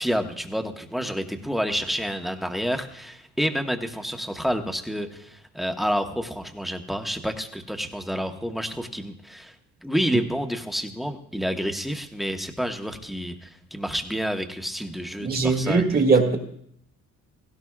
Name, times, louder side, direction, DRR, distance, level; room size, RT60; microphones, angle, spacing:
voice 1, 0.0-9.5 9.8-16.0, equal, ahead, 1.2 m, -29 dB
voice 2, 15.2-16.4, right 4 dB, 30° right, 2.0 m, -20 dB
17.0 x 16.5 x 2.4 m
cardioid pair, 90°, 30 cm